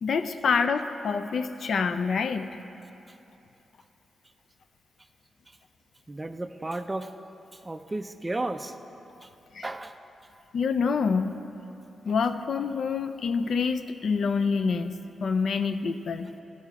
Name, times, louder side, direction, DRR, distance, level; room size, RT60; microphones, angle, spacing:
voice 1, 0.0-2.5 9.5-9.6 10.5-11.4 12.0-16.3, left 5 dB, 65° left, 10 dB, 0.4 m, -27 dB
voice 2, 6.1-7.1 7.5-8.7 9.2-9.3 9.6-10.0, right 2 dB, 20° right, 9 dB, 0.4 m, -33 dB
13.0 x 5.6 x 4.7 m, 2.9 s
cardioid pair, 95°, 0 cm